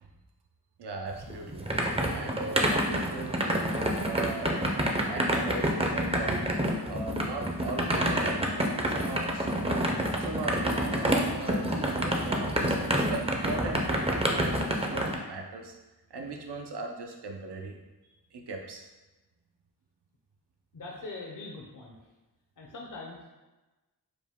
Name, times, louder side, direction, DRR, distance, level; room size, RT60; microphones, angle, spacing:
voice 1, 0.8-1.7 2.1-3.4 4.0-4.6 5.1-6.4 6.9-9.8 10.2-15.8 16.1-17.8 18.3-18.9, right 3 dB, 80° right, 2 dB, 0.6 m, -38 dB
sound 1, 1.1-15.1, right 1 dB, 15° right, 0.5 m, -28 dB
voice 2, 20.7-22.0 22.6-23.3, left 3 dB, 50° left, -1 dB, 0.6 m, -42 dB
4.9 x 2.1 x 3.5 m, 1.1 s
wide cardioid pair, 65°, 40 cm